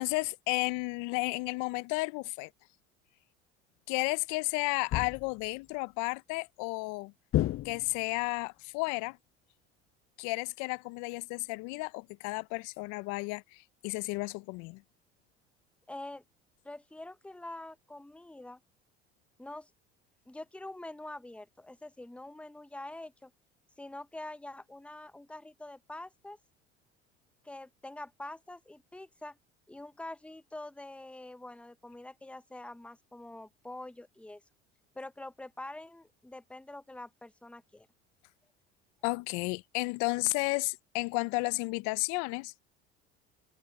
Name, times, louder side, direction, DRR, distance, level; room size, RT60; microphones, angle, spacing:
voice 1, 0.0-2.5 3.9-7.1 7.6-9.2 10.2-14.8 39.0-42.5, left 27 dB, 65° left, 1.0 m, -33 dB
sound 1, 4.9-5.5 7.3-8.2, left 14 dB, 40° left, 0.7 m, -31 dB
voice 2, 15.9-16.2 16.6-18.6 19.4-19.7 20.3-23.3 23.8-26.4 27.4-29.4 29.7-34.4 34.9-37.9, left 2 dB, 5° left, 1.1 m, -45 dB
hypercardioid pair, 70°, 32 cm